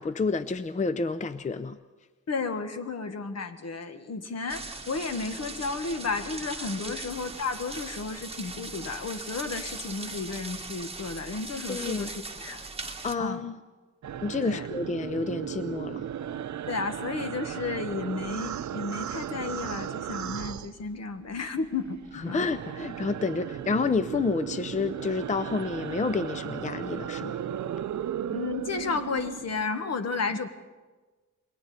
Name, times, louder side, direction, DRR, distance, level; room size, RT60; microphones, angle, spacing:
voice 1, 0.0-1.8 6.8-7.0 11.7-12.1 12.8-13.6 14.2-16.1 22.3-27.4 30.3-30.4, left 4 dB, 25° left, 12 dB, 0.6 m, -29 dB
voice 2, 2.3-12.7 13.2-13.4 14.4-14.7 16.7-22.0 22.3-22.5 28.3-30.5, left 4 dB, 60° left, 8 dB, 1.6 m, -33 dB
sound 1, 4.5-13.2, right 3 dB, 20° right, 1.8 m, -39 dB
sound 2, 14.0-21.4 21.6-29.6, right 10 dB, 70° right, 0.6 m, -36 dB
28.0 x 22.0 x 4.3 m, 1.3 s
wide cardioid pair, 115°, 30 cm